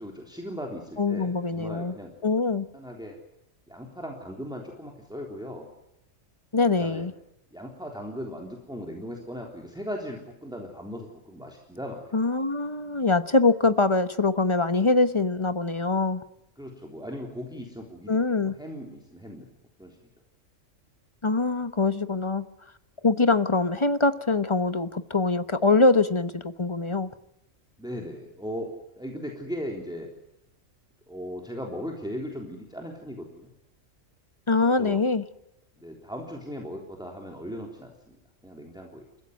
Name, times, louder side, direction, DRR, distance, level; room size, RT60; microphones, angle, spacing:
voice 1, 0.0-2.1 2.7-3.2 3.7-5.7 6.7-7.1 7.5-12.3 16.6-19.5 19.8-20.0 27.8-30.1 31.1-33.5 34.7-35.0 35.8-38.2 38.4-39.0, equal, 5° right, 0 dB, 3.5 m, -38 dB
voice 2, 1.0-1.9 2.2-2.7 6.5-7.1 12.1-16.2 18.1-18.6 21.2-22.5 23.0-27.1 34.5-35.2, left 3 dB, 25° left, 11 dB, 1.1 m, -23 dB
29.5 x 15.5 x 9.4 m, 0.86 s
omnidirectional pair, 1.3 m